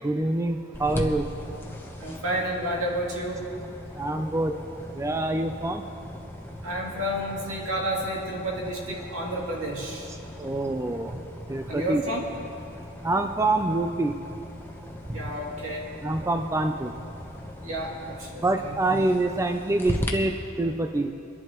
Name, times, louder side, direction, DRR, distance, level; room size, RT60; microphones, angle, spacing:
voice 1, 0.0-1.3 4.0-4.6 4.9-5.8 10.4-11.2 11.5-12.0 13.0-14.2 15.1-15.2 16.0-16.9 18.4-21.1, right 2 dB, 15° right, 6 dB, 0.4 m, -26 dB
sound 1, 0.7-20.1, left 1 dB, 10° left, 0.9 m, -39 dB
voice 2, 2.0-3.5 6.6-10.1 11.7-12.2 15.1-15.9 17.6-18.7, right 1 dB, 75° right, -3 dB, 2.5 m, -31 dB
24.5 x 11.0 x 3.0 m, 2.8 s
head